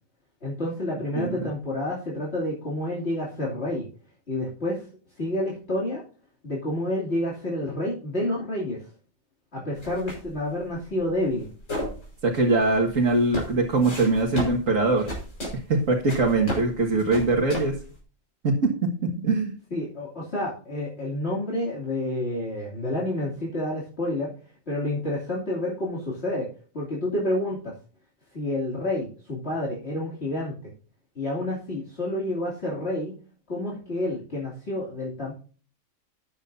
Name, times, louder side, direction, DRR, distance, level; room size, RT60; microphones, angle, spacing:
voice 1, 0.4-3.9 4.3-4.8 5.2-6.0 6.4-8.8 9.5-11.5 19.7-24.3 24.7-26.5 26.7-27.7 28.3-30.7 31.1-33.1 33.5-35.3, left 1 dB, 50° left, -5 dB, 3.2 m, -29 dB
voice 2, 1.1-1.5 12.2-15.1 15.5-17.8 18.4-18.7 19.2-19.5, right 2 dB, 75° right, 0 dB, 2.2 m, -22 dB
sound 1, 9.8-18.0, equal, 65° left, 5.7 m, -35 dB
13.5 x 9.5 x 2.7 m, 0.38 s
omnidirectional pair, 1.4 m